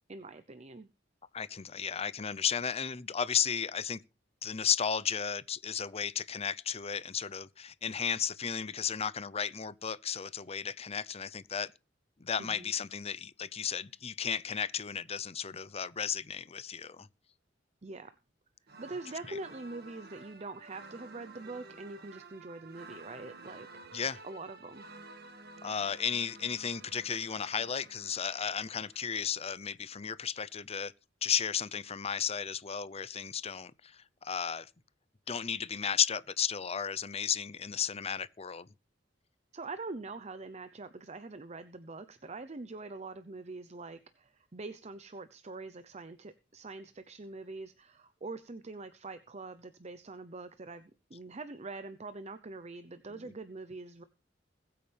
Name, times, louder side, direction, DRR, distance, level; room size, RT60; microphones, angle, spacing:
voice 1, 0.1-0.9 12.4-12.7 17.8-18.1 18.8-23.7 24.2-24.9 39.5-54.0, right 3 dB, 35° right, 0.7 m, -44 dB
voice 2, 1.3-4.0 4.4-11.7 12.2-17.1 23.9-24.2 25.6-30.9 31.2-34.7 35.3-38.7 53.1-53.3, left 7 dB, 35° left, 0.7 m, -34 dB
sound 1, 18.7-29.1, right 3 dB, 60° right, 1.9 m, -52 dB
21.0 x 8.7 x 3.4 m
head